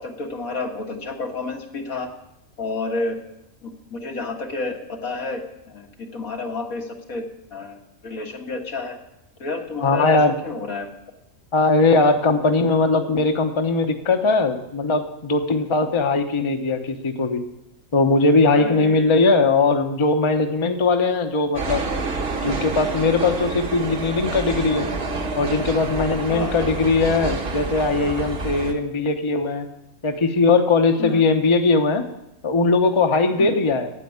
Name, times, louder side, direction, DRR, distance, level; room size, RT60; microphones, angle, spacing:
voice 1, 0.0-2.1 2.6-3.2 3.6-5.4 5.7-5.9 6.1-7.2 7.5-9.0 9.4-10.9 18.5-19.1 26.3-26.7 31.0-31.2 33.4-33.6, left 3 dB, 75° left, 2 dB, 2.0 m, -30 dB
voice 2, 9.8-10.3 11.5-17.4 17.9-21.8 22.4-24.9 25.4-29.7 30.0-32.0 32.4-33.9, left 3 dB, 25° left, 5 dB, 0.8 m, -20 dB
sound 1, 21.5-28.7, right 3 dB, 45° right, 1.3 m, -28 dB
9.3 x 8.3 x 9.4 m, 0.86 s
omnidirectional pair, 1.5 m